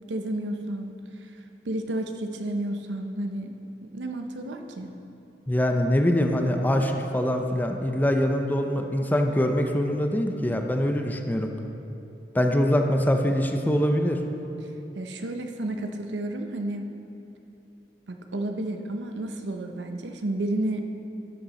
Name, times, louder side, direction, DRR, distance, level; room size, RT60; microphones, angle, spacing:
voice 1, 0.1-0.9 1.6-3.6 3.8-4.9 14.9-16.9 18.1-20.8, right 1 dB, 80° right, 5 dB, 0.7 m, -31 dB
voice 2, 5.5-11.5 12.3-14.2, equal, 10° left, 4 dB, 0.5 m, -23 dB
12.5 x 6.4 x 4.2 m, 2.9 s
head